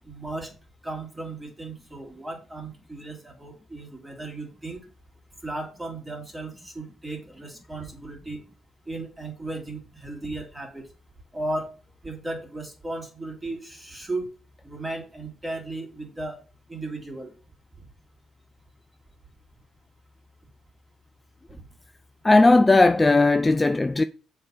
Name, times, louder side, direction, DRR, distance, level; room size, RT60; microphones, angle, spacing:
voice 1, 0.0-0.5 0.8-4.8 5.4-8.4 8.9-10.8 11.3-11.7 12.0-14.3 14.6-16.4 16.7-17.3, right 2 dB, 10° right, 2.6 m, -35 dB
voice 2, 22.2-24.0, left 2 dB, 20° left, 0.3 m, -17 dB
6.8 x 3.6 x 5.4 m
cardioid pair, 90°, 0 cm